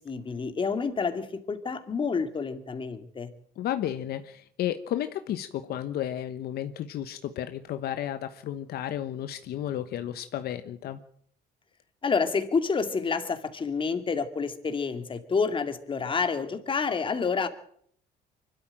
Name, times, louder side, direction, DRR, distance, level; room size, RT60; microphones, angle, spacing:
voice 1, 0.0-3.3 12.0-17.5, left 5 dB, 30° left, 8 dB, 2.4 m, -28 dB
voice 2, 3.6-11.0, left 11 dB, 65° left, 10 dB, 1.1 m, -33 dB
24.5 x 13.0 x 8.9 m, 0.63 s
cardioid pair, 110°, 17 cm